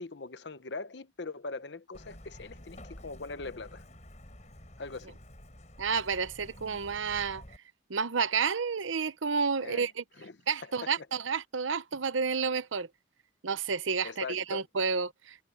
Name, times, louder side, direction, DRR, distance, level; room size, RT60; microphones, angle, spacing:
voice 1, 0.0-3.8 4.8-5.2 9.6-9.9 10.2-11.1 14.0-14.6, left 3 dB, 60° left, 0.9 m, -41 dB
Truck, 1.9-7.6, left 1 dB, 40° left, 6.1 m, -50 dB
voice 2, 5.8-7.4 7.9-10.0 10.5-12.9 13.4-15.4, right 5 dB, 85° right, 0.8 m, -30 dB
head